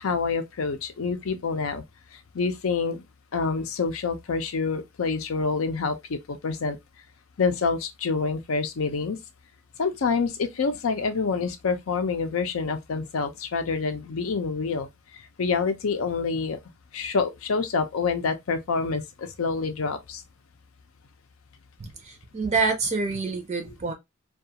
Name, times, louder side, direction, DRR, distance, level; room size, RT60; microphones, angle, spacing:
voice 1, 0.0-1.8 2.1-3.0 3.3-6.8 7.4-9.2 9.8-14.9 15.4-16.6 16.9-20.2 23.6-23.7, left 4 dB, 75° left, 0.5 m, -27 dB
voice 2, 21.8-23.9, right 4 dB, 30° right, 0.4 m, -27 dB
2.3 x 2.3 x 2.7 m
head